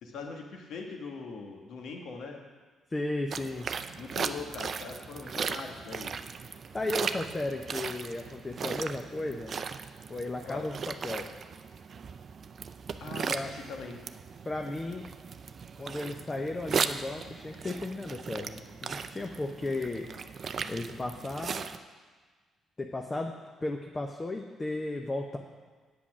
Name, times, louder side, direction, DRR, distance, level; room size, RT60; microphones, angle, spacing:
voice 1, 0.0-2.4 4.0-6.1 10.4-10.7 13.0-14.0, left 4 dB, 75° left, 2 dB, 1.5 m, -41 dB
voice 2, 2.9-3.7 6.7-9.5 10.1-11.3 13.3-13.5 14.5-15.1 15.8-20.1 20.7-21.7 22.8-23.3 23.6-25.4, left 2 dB, 25° left, 2 dB, 0.8 m, -35 dB
sound 1, 3.3-21.8, right 6 dB, 50° right, 0.5 m, -37 dB
8.6 x 8.4 x 6.2 m, 1.4 s
cardioid pair, 90°, 0 cm